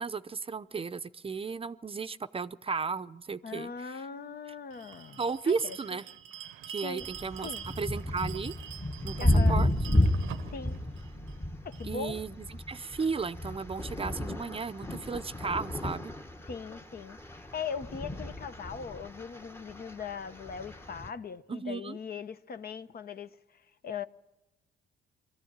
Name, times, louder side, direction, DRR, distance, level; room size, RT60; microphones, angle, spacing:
voice 1, 0.0-4.0 5.2-6.1 6.7-7.5 7.8-8.5 9.0-9.2 9.5-9.7 11.8-16.1 21.5-22.0, right 5 dB, 30° right, 0.6 m, -34 dB
voice 2, 3.4-5.8 6.8-7.1 7.4-7.6 9.2-9.6 10.5-10.8 11.6-12.2 16.5-24.1, left 6 dB, 50° left, 0.9 m, -40 dB
Bell, 4.7-11.9, right 10 dB, 90° right, 0.8 m, -45 dB
sound 1, 7.0-21.1, left 1 dB, 10° left, 1.0 m, -32 dB
22.5 x 14.0 x 8.8 m
cardioid pair, 90°, 20 cm